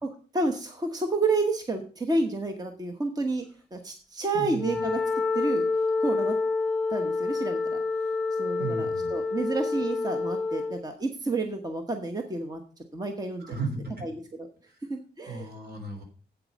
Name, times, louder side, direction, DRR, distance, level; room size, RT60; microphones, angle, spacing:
voice 1, 0.0-3.4 3.7-5.0 5.3-5.6 6.0-6.3 6.9-7.8 8.4-12.6 12.9-13.6 14.0-14.5 14.9-15.5, right 3 dB, 20° right, 5 dB, 1.1 m, -30 dB
voice 2, 4.3-4.8 8.6-9.1 13.4-14.0 14.7-14.8 15.2-16.0, right 3 dB, 70° right, 3 dB, 3.4 m, -35 dB
Wind instrument woodwind instrument, 4.5-10.8, left 3 dB, 10° left, 0.9 m, -28 dB
8.2 x 7.8 x 5.2 m, 0.38 s
wide cardioid pair, 150°, 17 cm